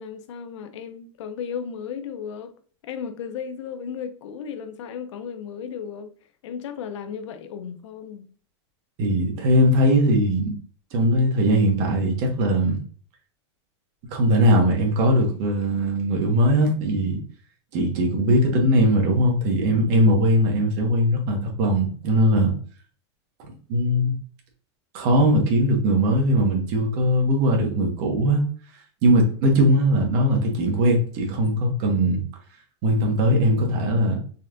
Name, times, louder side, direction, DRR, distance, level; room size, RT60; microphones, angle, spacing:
voice 1, 0.0-2.5 2.8-6.1 6.4-8.3, left 7 dB, 85° left, 0.6 m, -35 dB
voice 2, 9.0-10.5 10.9-12.8 14.1-17.2 17.7-22.5 23.7-24.1 24.9-28.4 29.0-32.2 32.8-34.2, equal, 50° right, 1.4 m, -20 dB
4.1 x 3.2 x 2.5 m
supercardioid pair, 145°, 15 cm